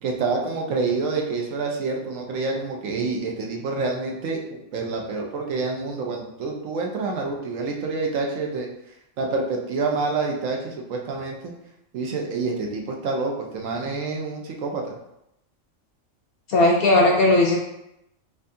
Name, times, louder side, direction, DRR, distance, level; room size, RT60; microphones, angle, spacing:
voice 1, 0.0-8.7 9.2-11.5 11.9-15.0, right 3 dB, 80° right, 1 dB, 1.1 m, -27 dB
voice 2, 16.5-17.6, left 2 dB, 60° left, -1 dB, 0.6 m, -17 dB
4.4 x 2.5 x 2.6 m, 0.83 s
omnidirectional pair, 1.3 m